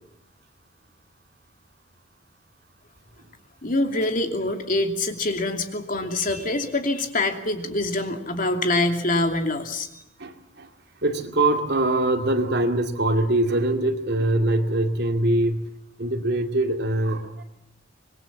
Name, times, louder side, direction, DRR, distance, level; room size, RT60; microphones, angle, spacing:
voice 1, 3.6-9.9, left 2 dB, 45° left, 5 dB, 2.7 m, -25 dB
voice 2, 10.2-10.7 11.0-15.7 16.0-17.4, right 1 dB, 55° right, 5 dB, 2.5 m, -23 dB
26.0 x 21.0 x 7.4 m, 0.82 s
head